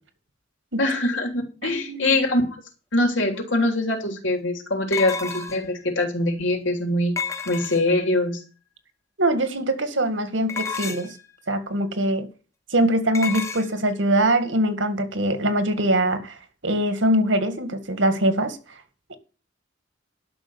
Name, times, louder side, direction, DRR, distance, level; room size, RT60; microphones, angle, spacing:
voice 1, 0.8-2.4 2.9-7.1 7.4-8.4, left 1 dB, 90° left, 3.4 m, -23 dB
voice 2, 1.6-2.2 9.2-11.2 11.5-12.3 12.7-16.4 16.6-18.6 19.1-19.2, right 1 dB, 85° right, 2.1 m, -22 dB
sound 1, 3.3-3.4 4.9-5.8 7.2-8.1 10.5-11.2 13.1-13.7, left 6 dB, 15° left, 1.0 m, -30 dB
11.5 x 6.4 x 8.0 m
head